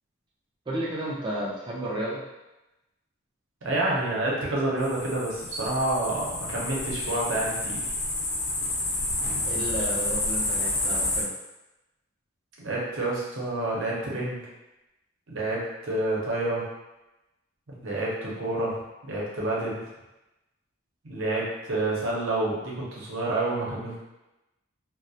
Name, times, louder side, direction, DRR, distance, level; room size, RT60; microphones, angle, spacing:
voice 1, 0.7-2.2 9.5-11.3, right 1 dB, 20° right, -5 dB, 0.4 m, -32 dB
voice 2, 3.6-7.8 12.6-14.5 15.3-16.7 17.7-19.8 21.0-24.0, right 2 dB, 65° right, -5 dB, 0.7 m, -28 dB
sound 1, 4.8-11.2, left 2 dB, 70° left, 0.7 m, -29 dB
2.3 x 2.0 x 2.7 m, 0.99 s
head